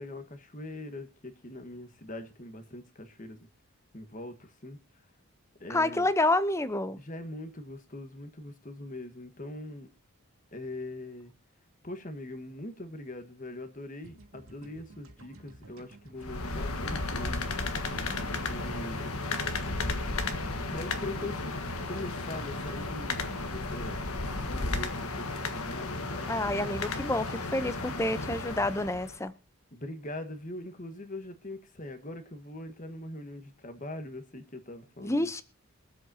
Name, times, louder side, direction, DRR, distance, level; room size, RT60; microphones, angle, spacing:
voice 1, 0.0-3.5 3.9-4.8 5.6-6.1 7.0-9.9 10.5-11.3 11.8-17.5 18.5-19.1 20.7-24.0 24.2-26.3 29.7-35.3, left 1 dB, 35° left, 1.5 m, -42 dB
voice 2, 5.7-7.0 26.3-29.3 35.0-35.4, left 2 dB, 15° left, 0.7 m, -28 dB
sound 1, 14.0-26.2, right 2 dB, 75° right, 2.4 m, -53 dB
sound 2, 16.2-29.2, left 3 dB, 85° left, 1.5 m, -34 dB
23.0 x 7.9 x 2.8 m
head